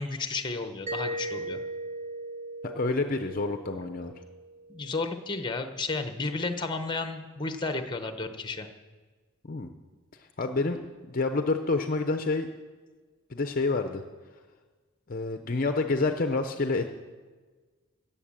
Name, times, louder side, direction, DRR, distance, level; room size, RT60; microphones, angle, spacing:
voice 1, 0.0-1.6 4.7-8.7, left 3 dB, 20° left, 7 dB, 0.9 m, -32 dB
Mallet percussion, 0.9-5.5, right 1 dB, 35° right, 1.1 m, -38 dB
voice 2, 2.8-4.1 9.4-9.7 10.2-10.8 11.1-12.5 13.3-14.0 15.1-16.9, left 3 dB, 40° left, 7 dB, 0.6 m, -28 dB
17.0 x 7.2 x 7.5 m, 1.4 s
head